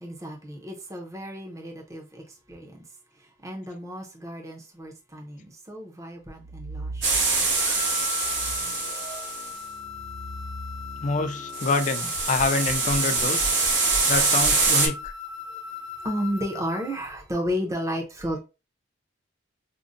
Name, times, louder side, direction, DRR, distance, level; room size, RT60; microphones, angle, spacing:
voice 1, 0.0-2.8 3.2-7.2 16.0-18.4, equal, 15° right, 0.6 m, -33 dB
sound 1, 6.3-7.7 8.2-15.1, right 1 dB, 60° right, 1.6 m, -39 dB
sound 2, 7.0-9.5 11.5-14.9, right 3 dB, 85° right, 1.4 m, -24 dB
sound 3, 7.5-17.1, left 7 dB, 65° left, 0.8 m, -39 dB
voice 2, 11.0-13.5 14.1-15.1, left 3 dB, 40° left, 0.4 m, -26 dB
5.1 x 2.1 x 2.5 m
head